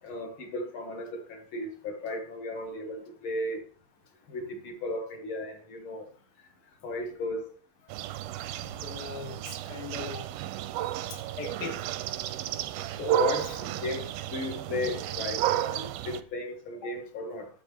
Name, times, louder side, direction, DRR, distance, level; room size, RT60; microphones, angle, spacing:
voice 1, 0.0-3.6 4.3-6.1 6.8-7.5 10.1-10.3 13.0-17.5, left 2 dB, 60° left, 1.3 m, -35 dB
sound 1, 7.9-16.2, right 13 dB, 85° right, 2.4 m, -32 dB
voice 2, 8.7-10.2 11.1-11.9, left 5 dB, 85° left, 0.9 m, -40 dB
11.0 x 7.6 x 3.6 m
omnidirectional pair, 4.2 m